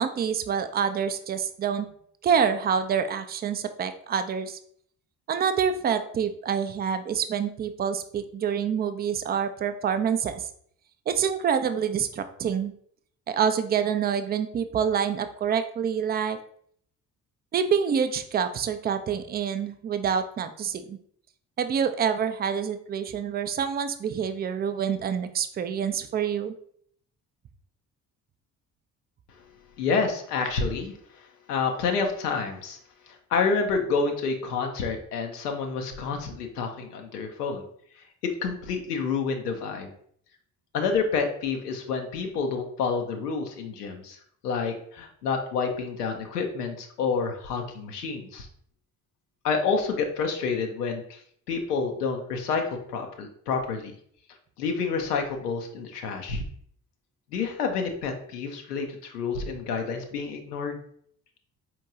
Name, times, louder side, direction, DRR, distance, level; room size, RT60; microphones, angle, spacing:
voice 1, 0.0-1.9 2.2-4.6 5.3-10.4 11.1-12.7 13.3-16.4 17.5-21.0 21.6-26.5, right 7 dB, 20° right, 9 dB, 0.4 m, -27 dB
voice 2, 29.8-30.9 31.5-32.8 33.1-37.7 38.2-39.9 40.7-44.2 44.4-48.5 49.4-51.2 51.5-54.0 54.6-56.4 57.3-60.8, left 5 dB, 80° left, 3 dB, 0.6 m, -28 dB
4.4 x 3.0 x 3.6 m, 0.63 s
figure-of-eight pair, 45°, 46 cm